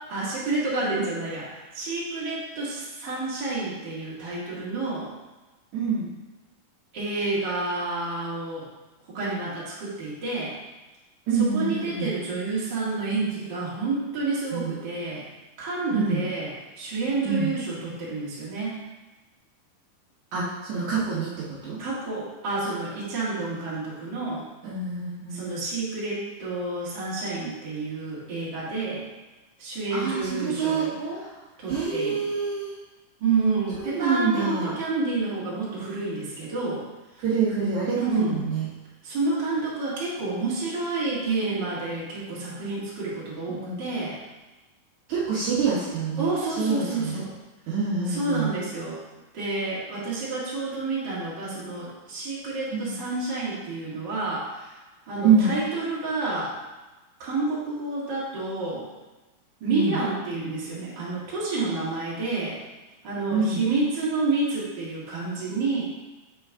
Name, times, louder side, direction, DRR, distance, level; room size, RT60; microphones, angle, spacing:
voice 1, 0.0-5.1 6.9-8.7 9.1-10.6 11.4-15.3 15.6-16.5 16.8-18.8 21.8-24.4 25.3-29.0 29.6-31.2 31.6-32.3 33.2-36.8 38.0-38.4 39.0-44.2 46.2-47.3 48.1-49.0 49.3-54.7 55.1-56.5 57.2-58.9 59.6-62.6 63.0-65.8, right 3 dB, 35° right, -8 dB, 2.1 m, -29 dB
voice 2, 5.7-6.1 11.3-12.1 14.5-14.7 15.9-16.2 17.3-17.5 20.3-21.8 24.6-25.5 29.9-30.9 31.7-32.8 33.8-34.7 37.2-38.7 43.5-43.8 45.1-46.3 46.6-47.2 47.7-48.5 52.7-53.0 55.2-55.5 59.7-60.0 63.3-63.6, right 5 dB, 65° right, -8 dB, 2.4 m, -26 dB
7.1 x 4.5 x 3.5 m, 1.1 s
omnidirectional pair, 3.8 m